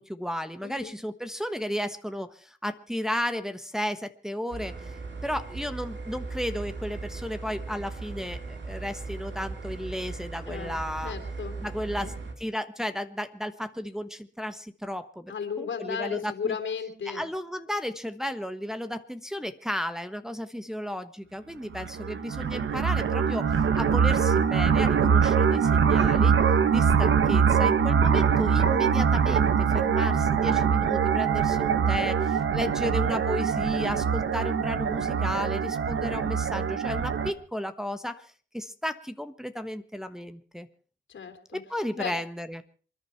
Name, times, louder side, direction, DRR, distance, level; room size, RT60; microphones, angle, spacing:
voice 1, 0.0-4.9 5.2-11.1 11.6-12.1 12.4-16.5 17.0-26.3 26.7-40.7 41.5-42.6, equal, ahead, 8 dB, 1.2 m, -34 dB
voice 2, 0.6-0.9 10.5-11.6 11.9-12.1 15.3-17.3 41.1-41.6 41.9-42.2, left 6 dB, 80° left, 6 dB, 3.2 m, -35 dB
sound 1, 4.5-12.3, right 3 dB, 70° right, 3.2 m, -38 dB
sound 2, 21.7-37.3, right 6 dB, 85° right, 1.3 m, -23 dB
27.5 x 10.5 x 4.6 m, 0.42 s
cardioid pair, 65°, 20 cm